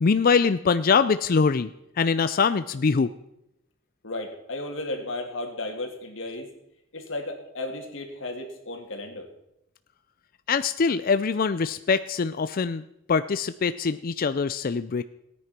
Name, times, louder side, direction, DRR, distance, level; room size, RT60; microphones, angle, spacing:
voice 1, 0.0-1.7 2.0-3.1 10.5-12.8 13.1-15.0, left 5 dB, 45° left, 12 dB, 0.4 m, -23 dB
voice 2, 4.0-6.5 6.9-9.3, left 2 dB, 75° left, 3 dB, 2.7 m, -34 dB
17.0 x 9.6 x 5.9 m, 0.83 s
head